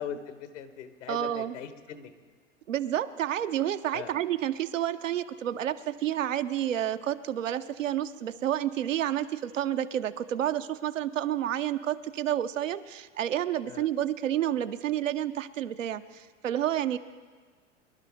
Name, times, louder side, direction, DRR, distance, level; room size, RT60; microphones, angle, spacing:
voice 1, 0.0-2.1 3.9-4.1 13.7-13.9, left 8 dB, 70° left, 10 dB, 1.4 m, -40 dB
voice 2, 1.1-1.6 2.7-17.0, right 11 dB, 85° right, 10 dB, 0.7 m, -30 dB
23.5 x 11.5 x 3.5 m, 1.5 s
hypercardioid pair, 95°, 38 cm